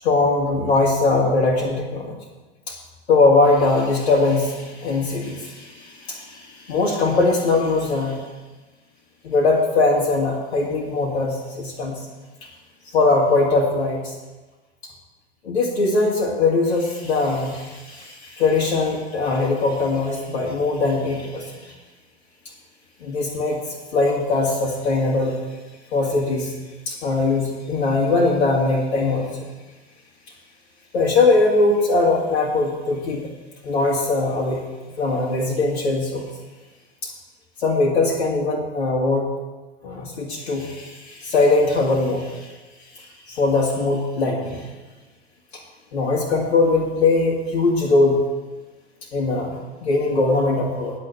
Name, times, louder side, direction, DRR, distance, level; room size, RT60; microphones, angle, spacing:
voice 1, 0.0-2.2 2.7-2.8 3.1-8.2 9.2-11.9 12.9-14.1 15.4-21.7 23.0-25.4 25.9-26.5 26.9-29.4 30.9-33.2 33.6-34.6 35.0-36.3 37.0-37.1 37.6-39.3 39.8-42.5 42.9-44.7 45.9-48.2 49.1-50.9, left 3 dB, 70° left, -4 dB, 2.3 m, -21 dB
9.3 x 7.5 x 7.7 m, 1.2 s
figure-of-eight pair, 90°, 32 cm